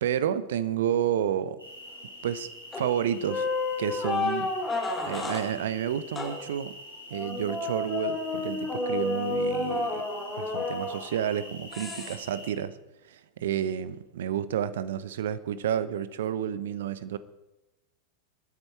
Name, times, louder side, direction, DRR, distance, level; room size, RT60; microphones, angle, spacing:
voice 1, 0.0-1.6 2.2-2.5 2.8-3.5 3.8-4.5 5.0-6.7 7.1-10.0 10.4-12.8 13.0-17.2, right 9 dB, 60° right, 16 dB, 0.9 m, -30 dB
sound 1, 1.6-12.5, left 1 dB, 85° right, 6.0 m, -45 dB
sound 2, 2.7-3.0 3.2-5.5 6.1-6.4 7.1-11.3 11.7-12.1, left 3 dB, 15° left, 3.6 m, -31 dB
24.5 x 9.8 x 4.6 m, 0.95 s
figure-of-eight pair, 90°, 0 cm